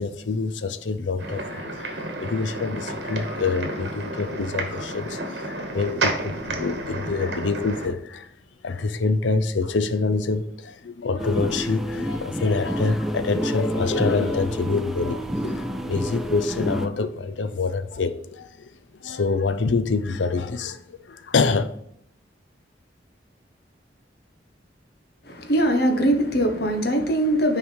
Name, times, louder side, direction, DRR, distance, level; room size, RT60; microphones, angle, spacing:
voice 1, 0.0-8.3 8.6-18.7 19.0-21.7, left 4 dB, 90° left, 0.6 m, -26 dB
sound 1, 1.2-7.9, right 2 dB, 70° right, 1.3 m, -31 dB
sound 2, 11.2-16.9, equal, ahead, 0.4 m, -28 dB
voice 2, 25.3-27.6, right 1 dB, 60° left, 1.1 m, -21 dB
6.2 x 4.8 x 5.0 m
head